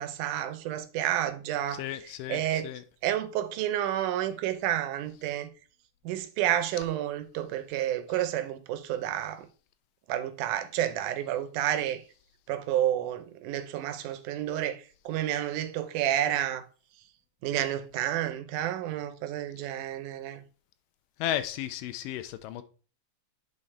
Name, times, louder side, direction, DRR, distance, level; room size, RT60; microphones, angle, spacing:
voice 1, 0.0-1.8 2.3-2.7 3.0-5.5 6.0-9.5 10.1-12.0 12.5-16.6 17.4-20.4, right 11 dB, 80° right, 2.1 m, -30 dB
voice 2, 1.7-2.8 21.2-22.6, left 12 dB, 90° left, 2.3 m, -34 dB
8.8 x 4.1 x 3.2 m
omnidirectional pair, 3.7 m